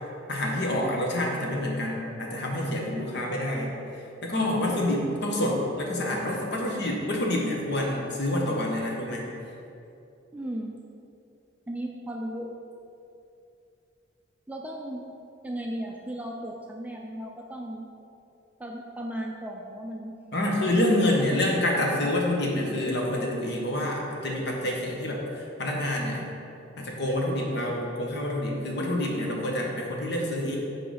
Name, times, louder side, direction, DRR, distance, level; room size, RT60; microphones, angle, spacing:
voice 1, 0.3-9.3 20.3-26.3 26.8-30.6, left 1 dB, 60° left, -1 dB, 1.2 m, -27 dB
voice 2, 10.3-10.7 11.7-12.5 14.5-15.0 15.4-17.9 18.6-20.1, right 1 dB, 10° right, 0 dB, 0.4 m, -35 dB
6.2 x 4.8 x 5.0 m, 2.7 s
head